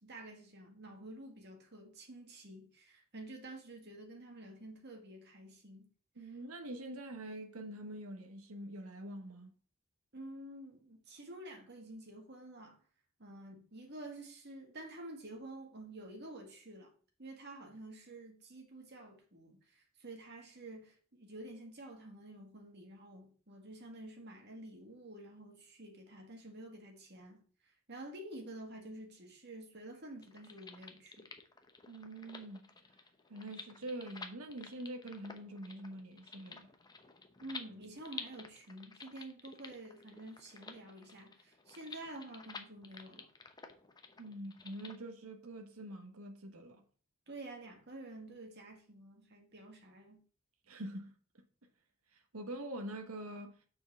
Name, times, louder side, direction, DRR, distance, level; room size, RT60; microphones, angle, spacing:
voice 1, 0.0-5.9 10.1-12.8 13.2-16.9 17.2-27.4 27.9-31.3 37.4-43.3 47.3-50.2, right 1 dB, 50° right, 2.0 m, -49 dB
voice 2, 6.2-9.5 31.9-32.7 33.3-36.7 44.2-46.8 50.7-51.1 52.1-53.6, right 1 dB, 85° right, 1.1 m, -45 dB
sound 1, 30.2-45.0, left 4 dB, 20° left, 0.8 m, -51 dB
6.2 x 4.7 x 6.3 m
head